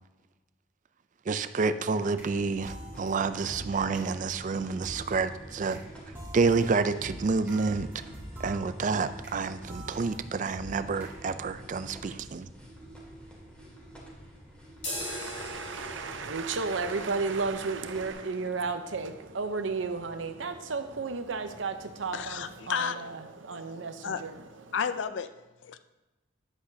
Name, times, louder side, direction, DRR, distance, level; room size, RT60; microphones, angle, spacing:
voice 1, 1.3-5.8 6.3-7.9 8.4-12.5, right 4 dB, 40° right, 12 dB, 0.4 m, -29 dB
sound 1, 1.8-11.5, right 1 dB, 10° right, 1.9 m, -46 dB
sound 2, 2.1-18.1, equal, 5° left, 2.1 m, -48 dB
sound 3, 14.8-22.6, left 1 dB, 35° left, 3.0 m, -44 dB
voice 2, 15.0-24.7, right 4 dB, 75° right, 9 dB, 0.7 m, -33 dB
voice 3, 22.1-23.1 23.5-24.2 24.7-25.3 25.6-25.8, left 6 dB, 75° left, 11 dB, 0.5 m, -33 dB
10.5 x 8.1 x 2.7 m, 1.1 s
head